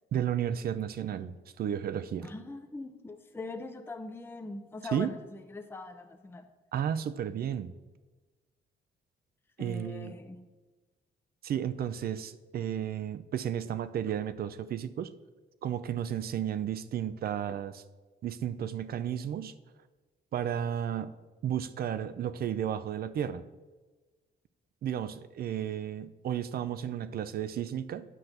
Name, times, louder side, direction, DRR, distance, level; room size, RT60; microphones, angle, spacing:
voice 1, 0.1-2.3 4.9-5.1 6.7-7.7 9.6-10.1 11.4-15.1 15.6-17.8 18.2-19.5 20.3-21.1 21.4-23.4 24.8-28.1, right 9 dB, 50° right, 13 dB, 0.4 m, -33 dB
voice 2, 2.2-6.5 9.6-10.5, left 3 dB, 10° left, 5 dB, 0.5 m, -42 dB
9.9 x 5.8 x 2.6 m, 1.3 s
cardioid pair, 90°, 20 cm